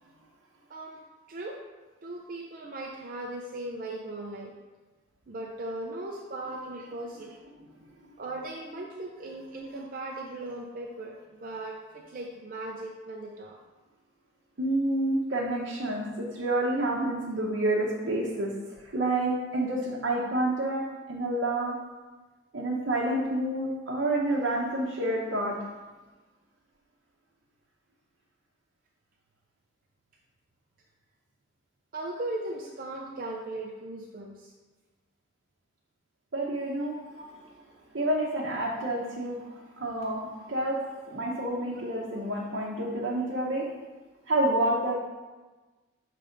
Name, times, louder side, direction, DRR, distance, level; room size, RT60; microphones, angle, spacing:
voice 1, 0.7-1.6 2.0-4.5 5.3-7.4 8.2-13.6 31.9-34.5 37.2-37.3, right 2 dB, 50° right, 0 dB, 0.5 m, -38 dB
voice 2, 14.6-18.5 18.8-20.8 21.1-21.7 22.5-25.5 36.3-37.0 37.9-39.5 39.8-40.8 41.1-43.6 44.3-44.9, right 1 dB, 70° right, -4 dB, 0.8 m, -28 dB
6.4 x 3.4 x 5.1 m, 1.2 s
head